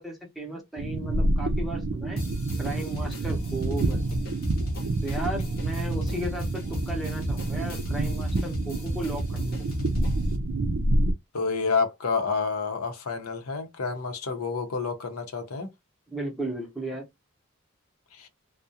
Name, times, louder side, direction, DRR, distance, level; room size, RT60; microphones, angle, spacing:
voice 1, 0.0-2.2 2.6-4.0 5.0-9.7 16.1-17.1, right 1 dB, ahead, 0.6 m, -35 dB
sound 1, 0.8-11.1, right 2 dB, 60° right, 0.4 m, -28 dB
sound 2, 2.2-10.3, equal, 45° left, 0.8 m, -35 dB
voice 2, 11.3-15.7 18.1-18.3, left 4 dB, 80° left, 0.7 m, -29 dB
2.4 x 2.1 x 2.6 m
head